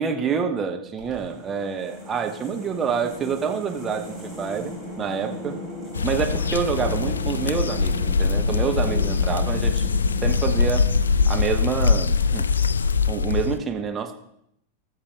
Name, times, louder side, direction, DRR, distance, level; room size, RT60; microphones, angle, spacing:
voice 1, 0.0-5.6 6.0-9.9 10.2-10.9 11.3-12.5 13.1-14.1, right 6 dB, 20° right, 5 dB, 1.1 m, -27 dB
sound 1, 1.0-12.1, equal, 5° left, 3.5 m, -36 dB
sound 2, 5.9-13.6, left 5 dB, 70° left, 0.3 m, -22 dB
18.5 x 6.7 x 3.4 m, 0.76 s
figure-of-eight pair, 90°, 0 cm